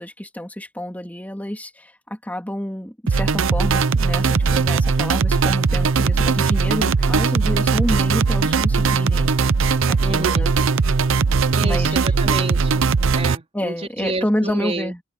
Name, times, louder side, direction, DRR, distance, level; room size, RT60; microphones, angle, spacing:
voice 1, 0.0-9.3 9.8-10.5 11.6-11.9 13.5-15.0, equal, 10° left, 2.9 m, -28 dB
sound 1, 3.1-13.4, right 4 dB, 70° right, 0.6 m, -19 dB
voice 2, 10.0-10.5 11.5-12.8 13.1-14.9, right 2 dB, 30° right, 3.8 m, -30 dB
open air
head